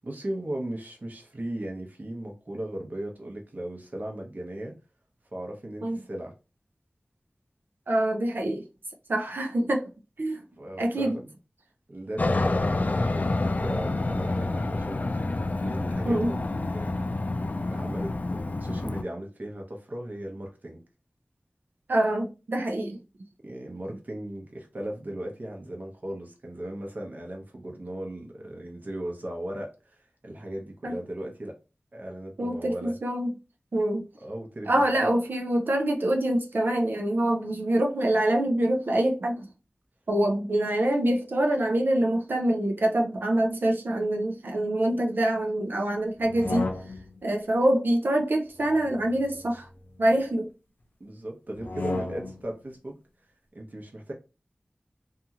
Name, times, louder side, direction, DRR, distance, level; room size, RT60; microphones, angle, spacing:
voice 1, 0.0-4.8 5.3-6.3 10.6-11.3 11.9-20.8 23.4-31.6 31.9-33.0 34.2-35.1 51.0-53.0 53.5-54.1, right 1 dB, 60° right, 0.9 m, -37 dB
voice 2, 7.9-8.6 9.1-9.9 10.2-10.4 10.8-11.2 16.0-16.4 21.9-23.0 30.8-31.0 32.4-33.3 33.7-34.0 34.7-39.5 40.1-46.7 47.2-49.7 50.0-50.5, right 1 dB, 80° right, 0.5 m, -25 dB
Aircraft, 12.2-19.0, left 2 dB, 50° left, 0.3 m, -28 dB
sound 1, 46.2-47.3 48.5-50.2 51.5-52.5, left 3 dB, 90° left, 0.6 m, -35 dB
2.7 x 2.4 x 2.8 m
wide cardioid pair, 40°, 3 cm